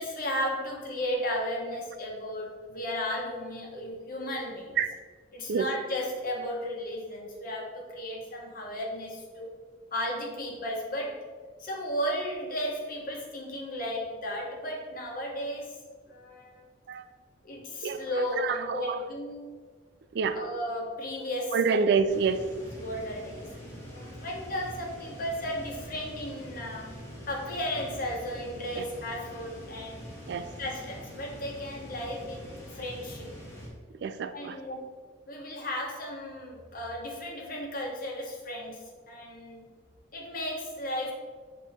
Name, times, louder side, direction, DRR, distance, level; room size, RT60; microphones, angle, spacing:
voice 1, 0.0-4.8 5.3-9.5 9.9-11.2 11.6-15.8 16.1-16.6 17.4-19.5 20.3-21.6 22.7-26.9 27.3-30.0 30.6-33.3 34.3-35.0 35.2-39.7 40.1-41.1, equal, 50° left, -1 dB, 1.2 m, -34 dB
voice 2, 18.4-19.0 20.1-20.4 21.5-22.4 28.7-28.8 30.3-30.5 34.0-34.6, right 5 dB, 60° right, 11 dB, 0.3 m, -27 dB
sound 1, 22.1-33.7, equal, 15° left, 1.6 m, -44 dB
8.0 x 3.1 x 4.2 m, 1.5 s
head